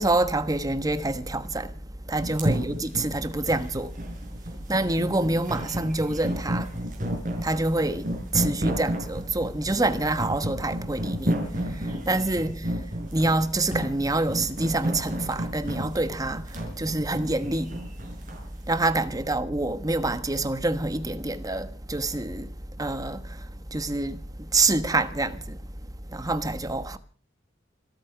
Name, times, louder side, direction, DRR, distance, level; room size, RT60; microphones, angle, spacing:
voice 1, 0.0-1.8 2.0-4.2 4.6-7.1 7.4-17.8 18.3-18.4 18.7-25.7 26.1-27.0, right 2 dB, 20° right, 1.2 m, -27 dB
sound 1, 2.2-18.5, equal, 45° right, 5.4 m, -31 dB
26.0 x 8.9 x 5.8 m
head